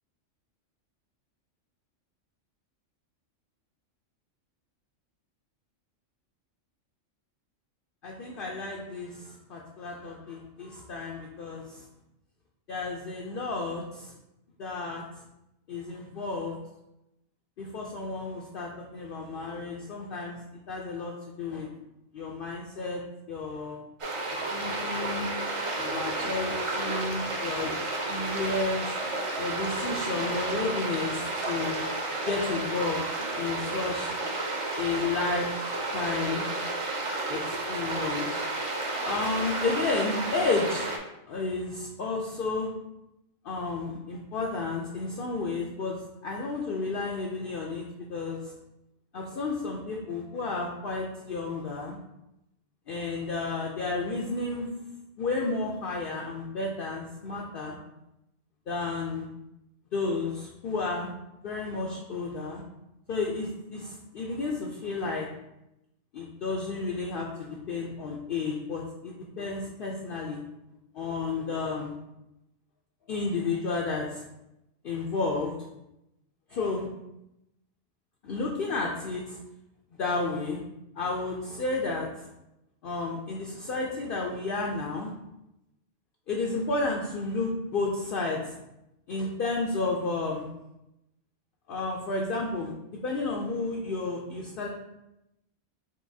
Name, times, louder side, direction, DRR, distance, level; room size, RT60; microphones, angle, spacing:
voice 1, 8.0-11.9 12.7-14.1 14.6-15.0 15.7-16.6 17.6-20.4 20.7-21.7 22.1-23.0 23.3-23.8 24.3-25.3 25.7-27.7 28.1-29.0 29.4-31.8 32.2-33.0 33.4-34.1 34.8-35.5 35.9-36.4 37.3-38.4 39.0-40.9 41.3-42.7 43.4-46.0 46.2-47.8 48.1-48.5 49.1-52.0 52.9-54.7 55.2-57.8 58.7-59.3 59.9-61.1 61.4-62.6 63.1-65.3 66.1-70.4 70.9-72.0 73.1-74.2 74.8-75.5 76.5-76.9 78.2-79.4 80.0-80.6 81.0-82.3 82.8-85.1 86.3-88.6 89.1-90.5 91.7-92.7 93.0-94.7, left 3 dB, 60° left, -1 dB, 0.6 m, -32 dB
sound 1, 24.0-41.0, right 2 dB, 50° right, 0.4 m, -31 dB
5.5 x 2.8 x 2.6 m, 0.89 s
omnidirectional pair, 1.3 m